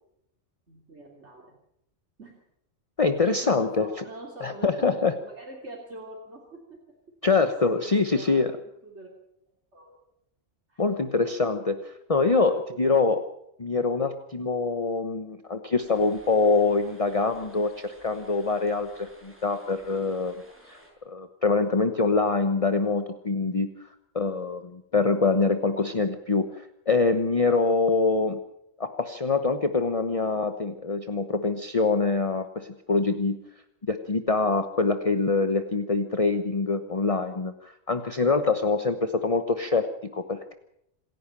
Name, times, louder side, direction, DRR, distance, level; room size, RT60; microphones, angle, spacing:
voice 1, 0.7-1.5 2.2-2.4 3.2-6.8 7.2-7.3 7.6-9.1 9.7-10.0 10.7-10.9 12.3-12.9 38.7-39.1, right 2 dB, 65° right, -1 dB, 3.4 m, -44 dB
voice 2, 3.0-3.9 4.4-5.1 7.2-8.6 10.8-13.2 13.6-20.3 20.7-20.8 21.1-23.7 24.1-28.4 28.8-33.4 33.9-39.0 39.2-40.5, left 4 dB, 30° left, 8 dB, 1.1 m, -25 dB
sound 1, 15.8-20.9, equal, 10° right, 7.0 m, -54 dB
27.0 x 11.0 x 8.9 m, 0.78 s
omnidirectional pair, 1.3 m